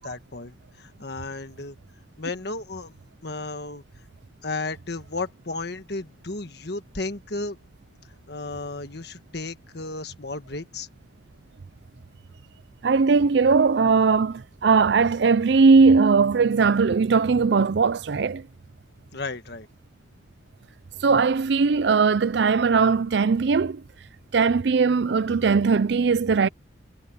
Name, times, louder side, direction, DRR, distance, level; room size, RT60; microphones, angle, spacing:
voice 1, 0.0-1.7 2.2-2.9 3.2-3.8 4.4-7.6 8.3-10.9 19.1-19.7, left 3 dB, 55° left, 1.4 m, -34 dB
voice 2, 12.8-18.5 21.0-23.8 24.3-26.5, right 4 dB, 60° right, 0.5 m, -19 dB
head